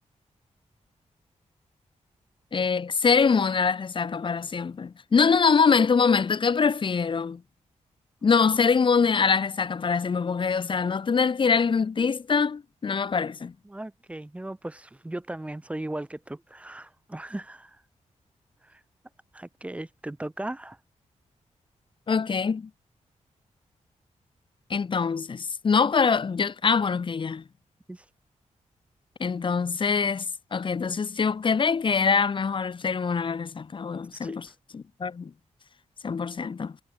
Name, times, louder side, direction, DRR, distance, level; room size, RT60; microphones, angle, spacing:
voice 1, 2.5-7.4 8.2-13.5 22.1-22.7 24.7-27.4 29.2-30.3 30.5-34.5 34.7-35.3 36.0-36.7, left 5 dB, 40° left, 2.6 m, -24 dB
voice 2, 13.7-17.8 18.6-18.8 19.3-20.8 27.9-28.1 34.1-34.4, right 1 dB, 10° right, 1.9 m, -37 dB
wide cardioid pair, 170°, 13 cm